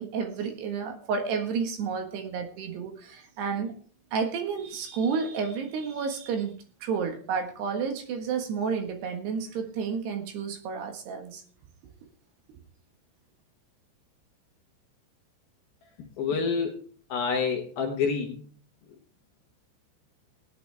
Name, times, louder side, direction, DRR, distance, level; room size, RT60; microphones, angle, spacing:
voice 1, 0.0-3.7 4.1-6.5 6.8-11.4, right 6 dB, 65° right, 5 dB, 3.2 m, -31 dB
voice 2, 16.2-16.8 17.1-18.5, left 5 dB, 70° left, 2 dB, 2.4 m, -27 dB
18.5 x 10.0 x 3.4 m, 0.42 s
omnidirectional pair, 5.9 m